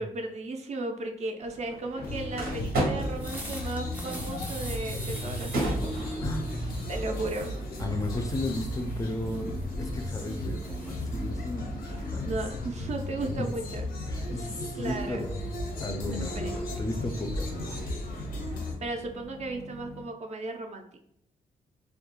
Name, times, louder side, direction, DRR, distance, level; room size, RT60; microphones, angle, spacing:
voice 1, 0.0-6.0 6.9-7.5 12.2-13.9 14.8-15.2 16.0-16.6 18.8-21.0, right 2 dB, 50° right, 3 dB, 0.4 m, -35 dB
sound 1, 1.4-20.0, right 1 dB, 90° right, 0.7 m, -39 dB
sound 2, 2.0-18.7, left 1 dB, 90° left, 0.6 m, -35 dB
sound 3, 3.0-12.3, right 1 dB, 10° right, 0.6 m, -46 dB
voice 2, 7.8-12.3 13.4-13.5 14.1-15.5 15.8-18.0, left 2 dB, 25° left, 4 dB, 0.3 m, -35 dB
2.3 x 2.1 x 2.9 m, 0.73 s
cardioid pair, 100°, 15 cm